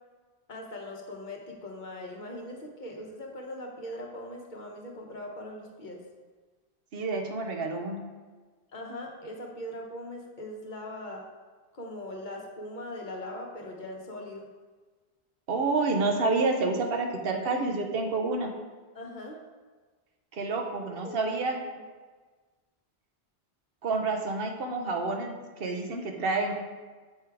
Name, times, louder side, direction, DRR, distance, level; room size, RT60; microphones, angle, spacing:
voice 1, 0.5-6.0 8.7-11.2 11.7-14.5 18.9-19.4 21.0-21.2 21.7-21.8, left 1 dB, 50° left, 0 dB, 1.0 m, -40 dB
voice 2, 6.9-8.0 15.5-18.5 20.3-21.6 23.8-26.5, right 3 dB, 70° right, 3 dB, 0.9 m, -28 dB
6.7 x 3.5 x 4.6 m, 1.4 s
omnidirectional pair, 1.0 m